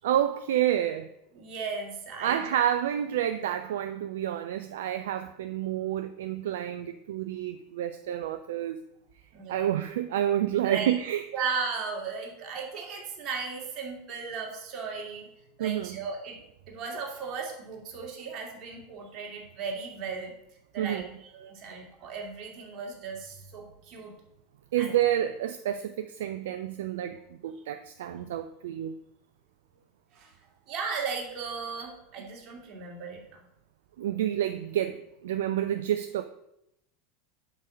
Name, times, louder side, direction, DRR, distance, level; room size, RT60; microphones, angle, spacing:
voice 1, 0.0-1.1 2.2-8.8 9.5-11.2 15.6-16.0 20.8-21.1 24.7-28.9 34.0-36.2, right 11 dB, 65° right, 0.3 m, -29 dB
voice 2, 1.3-2.4 9.3-9.7 10.6-11.0 11.3-15.3 15.6-16.4 16.7-20.3 20.7-24.1 24.8-25.0 30.1-30.3 30.7-33.4, right 5 dB, 45° right, 2.0 m, -36 dB
5.4 x 5.2 x 6.1 m
figure-of-eight pair, 80°, 0 cm